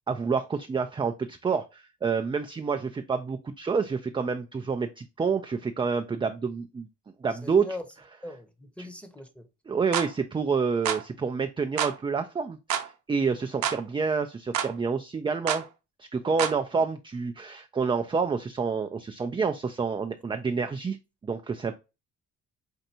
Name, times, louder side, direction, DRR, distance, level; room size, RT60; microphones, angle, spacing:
voice 1, 0.1-6.9 7.2-7.8 8.8-8.9 9.7-15.6 16.0-21.0 21.2-21.8, right 5 dB, 15° right, 0.3 m, -28 dB
voice 2, 7.4-7.8 8.2-8.5 8.8-9.5, left 2 dB, 5° left, 0.8 m, -39 dB
sound 1, 9.9-10.1 10.9-11.0 11.8-12.0 12.7-12.9 13.6-13.8 14.5-14.7 15.5-15.7 16.4-16.6, right 9 dB, 70° right, 0.7 m, -28 dB
5.4 x 2.5 x 2.8 m
cardioid pair, 90°, 30 cm